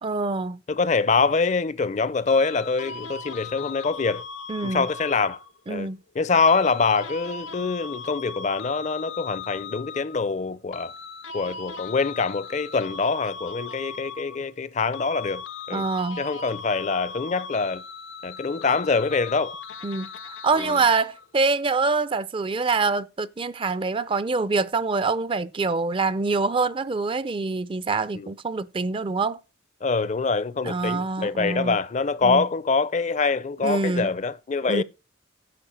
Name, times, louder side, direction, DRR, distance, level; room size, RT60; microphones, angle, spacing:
voice 1, 0.0-0.6 4.5-4.9 5.7-6.0 15.7-16.2 19.8-20.1 20.4-29.4 30.6-31.8 32.2-32.5 33.6-34.1 34.7-34.8, right 4 dB, 30° right, 0.4 m, -25 dB
voice 2, 0.7-4.2 4.6-5.4 5.7-5.9 6.2-10.9 11.3-15.9 16.2-17.8 18.2-19.5 20.6-20.8 28.1-28.3 29.8-34.8, left 4 dB, 40° left, 0.5 m, -24 dB
sound 1, 2.3-5.6 6.5-10.3 10.7-14.7 14.9-21.3, left 5 dB, 90° left, 0.8 m, -38 dB
10.0 x 4.5 x 7.3 m
head